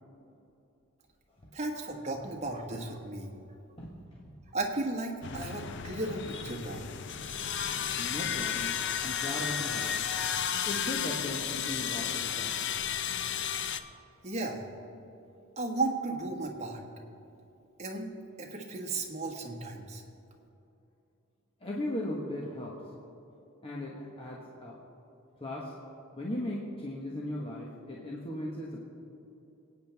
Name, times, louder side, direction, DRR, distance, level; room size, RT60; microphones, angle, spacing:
voice 1, 1.5-3.3 4.5-6.8 14.2-14.6 15.6-16.8 17.8-18.1 18.4-20.0, right 2 dB, 35° right, 1 dB, 1.4 m, -35 dB
voice 2, 3.8-4.4 8.0-9.9 10.6-12.5 21.6-22.8 23.6-24.8 25.4-25.7 26.2-28.8, left 1 dB, 25° left, -4 dB, 1.2 m, -37 dB
sound 1, 5.2-13.8, left 8 dB, 60° left, 0.6 m, -33 dB
25.0 x 9.0 x 3.5 m, 2.7 s
head